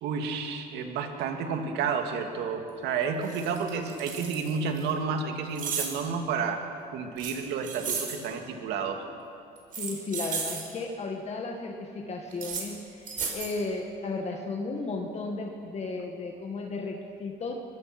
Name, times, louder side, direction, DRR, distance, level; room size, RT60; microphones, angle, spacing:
voice 1, 0.0-6.6 6.9-9.0, right 5 dB, 85° right, 4 dB, 2.3 m, -31 dB
sound 1, 2.7-2.8 3.2-4.8 5.5-6.0 7.2-8.2 9.6-10.6 12.3-12.6 13.1-13.5, right 5 dB, 55° right, 5.1 m, -34 dB
voice 2, 9.8-17.5, left 3 dB, 40° left, 2 dB, 1.9 m, -34 dB
23.0 x 22.0 x 6.1 m, 2.6 s
cardioid pair, 110°, 17 cm